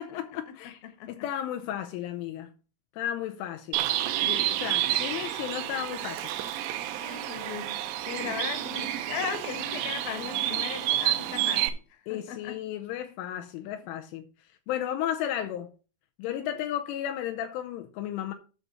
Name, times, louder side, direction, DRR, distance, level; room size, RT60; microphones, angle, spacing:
voice 1, 0.0-0.8 1.1-2.5 3.0-3.9 4.3-6.3 12.1-14.3 14.7-15.7 16.2-18.3, left 11 dB, 85° left, 3.0 m, -34 dB
Bird, 3.7-11.7, right 13 dB, 80° right, 2.6 m, -29 dB
voice 2, 7.0-11.6 11.9-12.6 16.4-16.5, left 8 dB, 65° left, 2.6 m, -37 dB
9.9 x 4.1 x 6.8 m
omnidirectional pair, 5.9 m